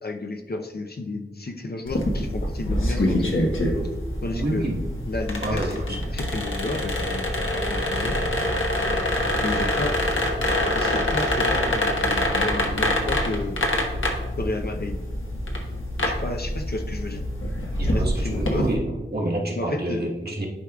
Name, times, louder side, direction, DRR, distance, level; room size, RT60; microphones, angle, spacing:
voice 1, 0.0-3.5 4.2-4.7 5.1-5.6 5.9-8.2 9.4-10.0 10.7-13.6 14.4-15.0 16.1-17.2 17.8-18.7 19.5-20.1, left 2 dB, 50° left, 4 dB, 0.6 m, -32 dB
sound 1, 1.9-18.7, left 1 dB, 70° left, 1.2 m, -25 dB
voice 2, 4.3-4.8 5.4-6.1 17.8-20.5, right 1 dB, 50° right, -2 dB, 1.4 m, -28 dB
11.5 x 4.7 x 2.3 m, 1.1 s
wide cardioid pair, 65°, 21 cm